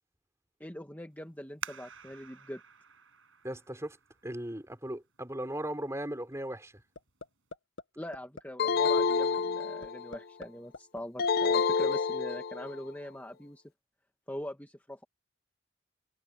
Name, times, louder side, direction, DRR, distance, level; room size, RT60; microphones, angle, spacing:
voice 1, 0.6-2.6 8.0-13.6 14.3-15.0, left 1 dB, 10° left, 1.8 m, -42 dB
sound 1, 1.6-5.0 5.6-5.7 6.3-6.7 7.1-7.2, right 7 dB, 85° right, 7.7 m, -47 dB
voice 2, 3.4-4.0 4.2-6.7, right 1 dB, 15° right, 4.7 m, -37 dB
sound 2, 7.0-7.3 7.5-7.8 8.1-8.4 8.8-9.0 9.4-9.5 9.8-10.5 10.7-11.7, left 3 dB, 75° left, 1.6 m, -44 dB
sound 3, 8.6-10.2 11.2-12.8, left 5 dB, 50° left, 0.9 m, -28 dB
head